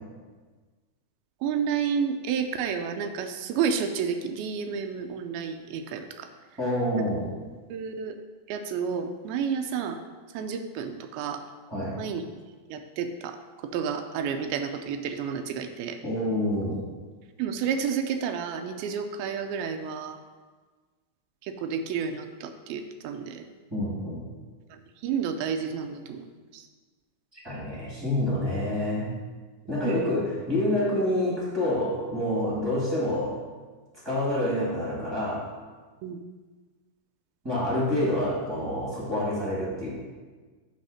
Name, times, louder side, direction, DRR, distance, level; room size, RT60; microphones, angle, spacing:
voice 1, 1.4-6.3 6.9-7.0 7.7-8.2 8.5-10.0 10.3-11.4 12.0-12.3 12.7-13.4 13.7-16.0 17.4-20.2 21.4-23.5 24.7-26.7 29.8-30.2 36.0-36.2, right 7 dB, 85° right, 6 dB, 2.4 m, -30 dB
voice 2, 6.6-7.3 11.7-12.0 16.0-16.8 23.7-24.2 27.3-29.1 29.7-33.3 34.0-35.5 37.4-39.9, left 1 dB, 10° right, -7 dB, 1.3 m, -27 dB
9.7 x 3.5 x 6.4 m, 1.4 s
omnidirectional pair, 4.3 m